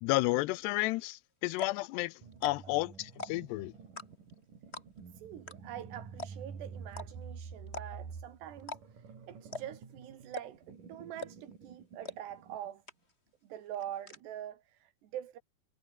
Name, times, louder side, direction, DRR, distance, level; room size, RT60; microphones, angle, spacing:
voice 1, 0.0-2.1 2.4-3.7, left 21 dB, 85° left, 2.7 m, -31 dB
sound 1, 1.0-1.1 1.5-1.8 2.3-2.8 3.1-3.5 4.0-4.3 4.7-5.1 5.5-5.6 5.8-5.9 6.2-6.5 6.9-7.1 7.7-8.1 8.6-9.1 9.5-9.8 10.3-10.7 11.2-11.5 12.0-12.2 12.5-12.6 12.9-13.3 13.6-14.2, left 3 dB, 15° left, 2.8 m, -42 dB
sound 2, 2.2-12.7, right 5 dB, 50° right, 5.7 m, -49 dB
voice 2, 5.2-12.8 13.4-15.4, right 11 dB, 85° right, 4.3 m, -45 dB
omnidirectional pair, 4.8 m